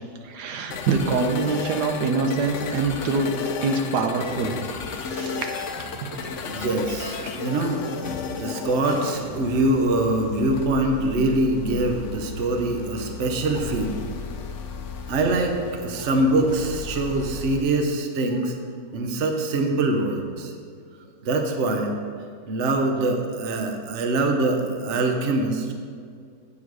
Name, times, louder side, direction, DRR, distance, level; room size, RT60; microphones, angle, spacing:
voice 1, 0.2-3.3 3.6-4.6 5.0-5.5 5.8-6.3, right 4 dB, 80° right, 4 dB, 1.3 m, -25 dB
sound 1, 0.7-17.6, left 5 dB, 65° left, 0.8 m, -34 dB
voice 2, 6.4-7.8 8.3-14.0 15.1-18.6 18.9-20.5 21.2-22.0 22.5-25.7, right 2 dB, 50° right, 3 dB, 1.1 m, -24 dB
8.6 x 7.0 x 4.7 m, 2.2 s
omnidirectional pair, 1.7 m